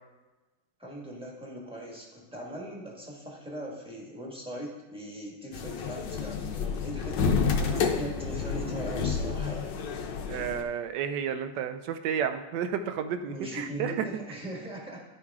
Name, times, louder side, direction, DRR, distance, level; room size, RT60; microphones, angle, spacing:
voice 1, 0.8-7.6 7.9-9.8 13.2-15.0, equal, 5° right, -3 dB, 1.3 m, -40 dB
sound 1, 5.5-10.6, left 5 dB, 65° left, 1.2 m, -29 dB
voice 2, 10.3-13.9, right 8 dB, 75° right, 9 dB, 1.0 m, -32 dB
11.5 x 4.8 x 3.6 m, 1.2 s
omnidirectional pair, 2.3 m